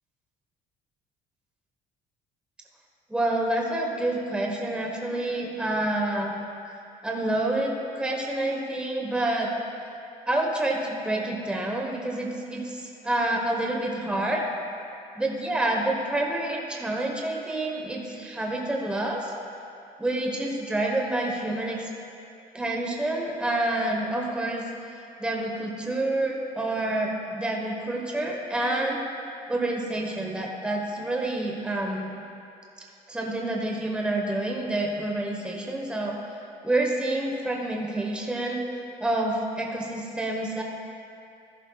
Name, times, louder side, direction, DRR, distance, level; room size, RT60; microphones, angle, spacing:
voice 1, 3.1-6.3 7.0-9.5 10.3-14.4 15.2-19.3 20.0-21.9 22.5-24.6 25.2-29.0 29.5-32.1 33.1-36.1 36.6-38.6 39.0-40.6, right 1 dB, 5° right, -1 dB, 1.0 m, -28 dB
13.5 x 11.0 x 2.3 m, 2.6 s
cardioid pair, 110°, 17 cm